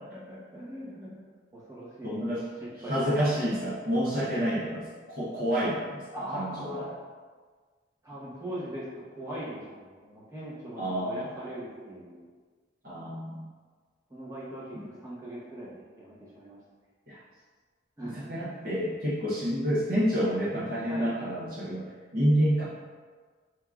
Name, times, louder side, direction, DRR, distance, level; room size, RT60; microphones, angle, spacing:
voice 1, 0.1-1.2 1.5-2.2 2.8-3.3 6.1-6.9 8.0-8.9 9.1-12.2 14.1-16.6 18.0-18.6 20.9-21.1, right 1 dB, 15° right, -9 dB, 1.0 m, -40 dB
voice 2, 2.0-2.5 2.8-6.0 6.3-6.9 10.8-11.3 12.8-13.5 14.7-14.9 17.1-17.2 18.0-22.6, equal, 45° right, -7 dB, 0.7 m, -29 dB
4.5 x 3.6 x 2.4 m, 1.5 s
head